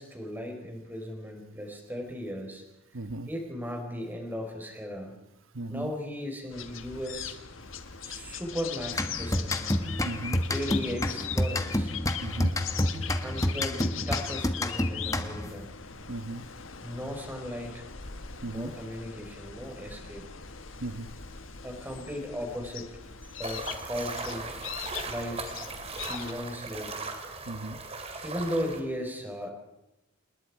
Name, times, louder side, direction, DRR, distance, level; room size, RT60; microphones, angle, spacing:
voice 1, 0.0-2.6 2.9-3.0 3.3-5.2 5.7-7.4 8.0-9.6 10.5-11.9 13.2-15.7 16.8-17.9 18.5-20.3 21.6-22.9 23.4-24.5 25.1-25.6 26.0-27.1 28.2-29.5, equal, 10° right, 2 dB, 4.4 m, -36 dB
voice 2, 2.9-3.3 5.5-5.9 10.0-10.4 12.2-12.5 16.1-16.4 18.4-18.7 20.8-21.1 27.4-27.8, right 2 dB, 85° right, 13 dB, 1.1 m, -36 dB
sound 1, 6.5-26.3, left 8 dB, 80° left, 1.4 m, -41 dB
sound 2, 8.9-15.6, left 1 dB, 15° left, 1.4 m, -29 dB
sound 3, 23.4-28.8, right 3 dB, 30° right, 2.6 m, -38 dB
28.0 x 20.5 x 4.8 m, 0.92 s
head